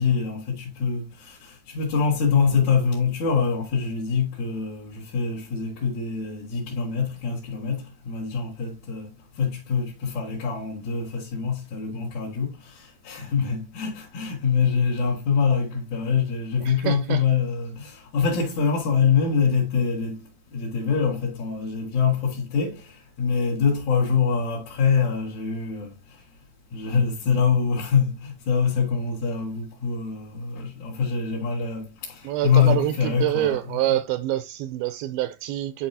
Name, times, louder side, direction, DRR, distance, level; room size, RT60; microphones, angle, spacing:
voice 1, 0.0-9.1 9.4-20.2 20.5-22.9 23.2-25.9 26.7-33.6, left 6 dB, 55° left, 2.9 m, -24 dB
voice 2, 16.6-17.2 32.2-35.9, right 14 dB, 80° right, 2.3 m, -26 dB
10.5 x 4.7 x 2.7 m
omnidirectional pair, 4.3 m